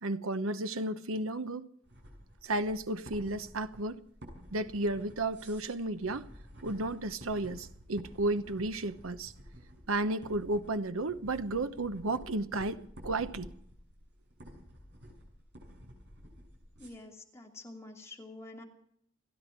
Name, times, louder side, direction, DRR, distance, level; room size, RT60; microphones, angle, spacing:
voice 1, 0.0-1.7 2.4-4.0 4.5-6.3 6.6-9.3 9.9-13.5, right 2 dB, 80° right, 1.0 m, -33 dB
sound 1, 1.8-16.9, equal, 55° right, 7.5 m, -51 dB
voice 2, 16.8-18.6, left 2 dB, 15° left, 2.8 m, -48 dB
29.5 x 10.5 x 4.6 m
head